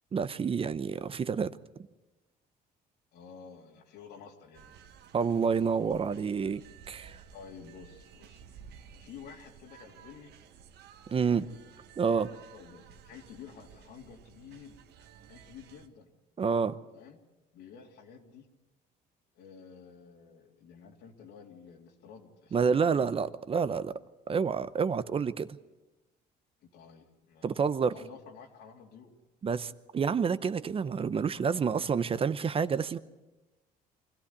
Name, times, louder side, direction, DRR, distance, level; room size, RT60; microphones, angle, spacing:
voice 1, 0.1-1.6 5.1-7.2 11.1-11.4 12.0-12.3 16.4-16.8 22.5-23.9 24.3-25.6 27.4-27.9 29.4-33.0, right 6 dB, 35° right, 0.8 m, -28 dB
voice 2, 3.1-4.7 7.3-8.6 9.0-10.3 11.3-11.5 12.0-14.8 15.3-16.1 16.9-17.2 17.5-18.5 19.3-23.1 26.6-29.1, left 6 dB, 80° left, 3.2 m, -51 dB
sound 1, 4.5-15.9, right 7 dB, 75° right, 1.6 m, -54 dB
24.5 x 14.5 x 9.7 m
cardioid pair, 110°, 17 cm